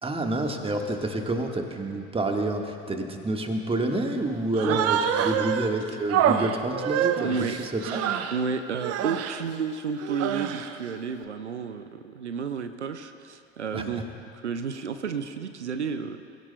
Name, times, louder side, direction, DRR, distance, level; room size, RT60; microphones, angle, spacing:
voice 1, 0.0-8.1 13.7-14.0, right 2 dB, 15° right, 3 dB, 1.4 m, -28 dB
Human voice, 4.5-5.7 6.1-8.4 8.8-9.4 10.0-10.8, right 9 dB, 45° right, 0.8 m, -26 dB
voice 2, 7.2-7.5 8.3-16.2, right 6 dB, 90° right, 9 dB, 0.5 m, -31 dB
21.5 x 16.5 x 2.2 m, 2.5 s
figure-of-eight pair, 60°, 34 cm